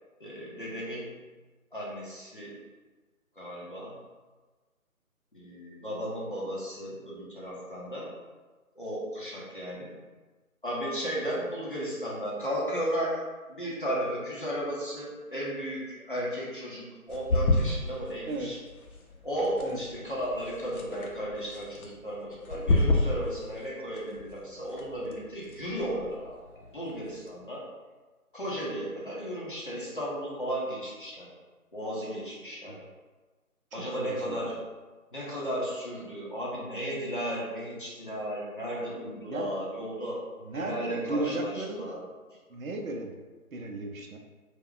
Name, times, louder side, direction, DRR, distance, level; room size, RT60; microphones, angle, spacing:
voice 1, 0.2-1.1 1.7-2.5 3.4-3.9 5.3-8.1 8.8-9.9 10.6-13.2 13.5-18.6 19.2-26.4 26.7-27.6 28.3-31.3 31.7-32.8 33.7-34.6 35.1-40.2 40.5-42.0, equal, 35° left, -6 dB, 0.6 m, -34 dB
sound 1, 17.1-27.4, left 2 dB, 75° left, 0.7 m, -32 dB
voice 2, 33.7-34.6 39.3-39.6 40.4-42.0 42.5-43.1 43.5-44.2, right 2 dB, 70° right, 2 dB, 0.5 m, -35 dB
2.3 x 2.2 x 3.6 m, 1.3 s
figure-of-eight pair, 155°, 44 cm